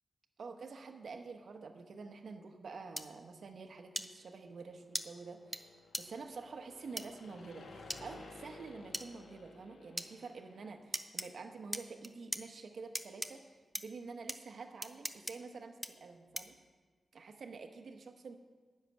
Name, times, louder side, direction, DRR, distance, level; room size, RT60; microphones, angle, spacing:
voice 1, 0.4-16.6 17.1-18.4, right 4 dB, 65° right, 5 dB, 1.1 m, -48 dB
sound 1, 3.0-3.1 3.9-4.1 4.9-5.0 5.5-5.6 5.9-6.0 7.0-7.1 7.9-8.0 8.9-9.1 10.0-10.1 10.9-11.3 11.7-12.4 12.9-13.3 13.7-13.8 14.3-14.4 14.8-15.3 15.8-15.9 16.3-16.6, equal, ahead, 0.5 m, -38 dB
sound 2, 4.2-11.1, left 3 dB, 90° left, 1.2 m, -55 dB
10.5 x 6.6 x 9.0 m, 1.4 s
wide cardioid pair, 155°, 0 cm